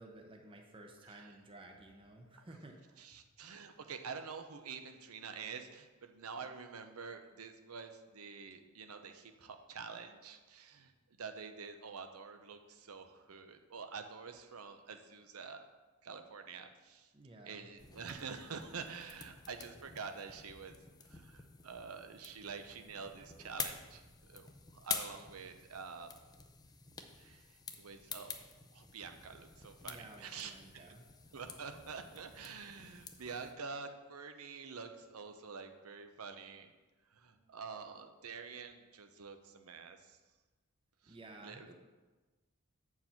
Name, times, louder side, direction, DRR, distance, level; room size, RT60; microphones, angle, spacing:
voice 1, 0.0-3.2 17.1-17.7 26.7-27.0 29.8-31.1 37.3-37.5 41.0-41.7, right 2 dB, 25° right, 3 dB, 0.8 m, -54 dB
voice 2, 3.0-10.9 11.2-15.6 16.0-17.1 17.5-20.8 21.0-26.1 27.2-28.3 28.7-30.8 31.3-36.7 37.1-40.2 41.0-41.1 41.4-41.7, right 5 dB, 85° right, 7 dB, 0.7 m, -47 dB
sound 1, 17.8-33.5, left 5 dB, 20° left, 0.5 m, -48 dB
7.8 x 4.8 x 5.7 m, 1.3 s
head